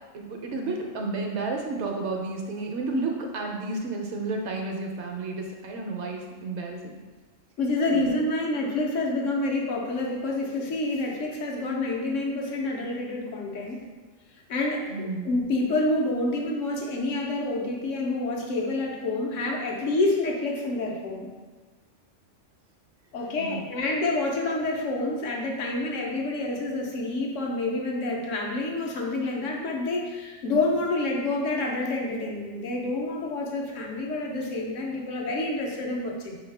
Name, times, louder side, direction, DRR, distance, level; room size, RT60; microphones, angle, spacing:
voice 1, 0.1-7.0 7.9-8.1 14.9-15.3 23.4-23.6, right 3 dB, 65° right, 1 dB, 0.8 m, -31 dB
voice 2, 7.6-13.8 14.5-21.3 23.1-36.4, left 2 dB, 75° left, -1 dB, 1.1 m, -28 dB
5.3 x 2.8 x 3.2 m, 1.4 s
omnidirectional pair, 1.3 m